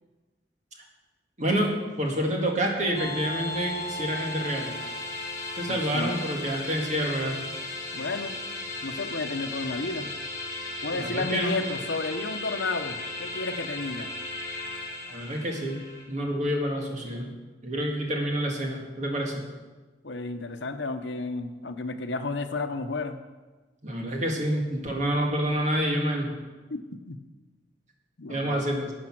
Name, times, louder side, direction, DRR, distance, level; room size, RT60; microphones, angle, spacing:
voice 1, 1.4-1.7 2.0-4.8 5.6-7.4 10.9-11.6 15.1-15.8 16.1-17.3 17.6-19.4 23.8-26.3 28.3-28.9, equal, 40° right, 1 dB, 2.0 m, -28 dB
sound 1, 3.0-16.0, left 2 dB, 20° left, 2.9 m, -36 dB
voice 2, 5.7-6.1 7.9-8.4 8.8-10.1 10.8-14.1 20.0-23.2 26.7-27.2 28.2-28.7, left 3 dB, 75° left, 8 dB, 0.8 m, -32 dB
12.0 x 8.6 x 6.0 m, 1.3 s
head